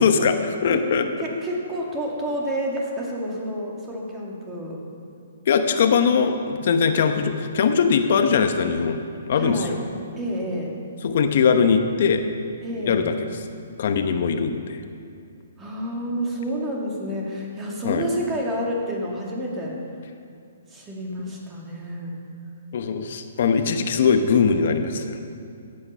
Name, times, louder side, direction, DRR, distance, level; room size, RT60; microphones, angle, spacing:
voice 1, 0.0-1.1 5.5-9.0 9.3-9.8 11.0-12.2 12.9-13.1 13.8-14.8 17.8-18.0 22.7-25.2, left 6 dB, 55° left, 7 dB, 0.9 m, -21 dB
voice 2, 1.2-4.8 9.3-9.7 10.2-10.8 12.6-13.1 15.6-19.8 20.7-22.1, equal, 15° right, -2 dB, 2.2 m, -29 dB
14.5 x 8.7 x 5.6 m, 2.5 s
hypercardioid pair, 155°, 0 cm